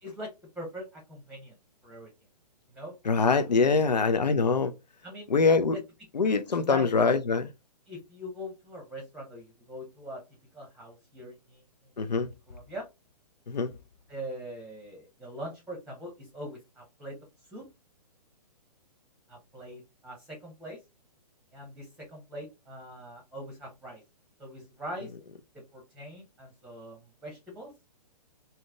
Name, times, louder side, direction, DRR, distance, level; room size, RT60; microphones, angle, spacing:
voice 1, 0.0-0.3 0.6-1.5 1.8-2.1 2.7-2.9 3.3-4.0 5.0-5.3 6.6-6.9 7.9-10.2 10.5-11.6 12.5-12.9 14.1-17.2 17.5-17.7 19.3-20.8 21.5-24.0 24.4-25.1 25.7-27.7, equal, 5° right, 0.9 m, -42 dB
voice 2, 3.1-4.7 5.3-5.8 6.1-7.5 12.0-12.3 13.5-13.7, left 4 dB, 85° left, 0.5 m, -24 dB
3.5 x 2.7 x 3.3 m
figure-of-eight pair, 120°, 21 cm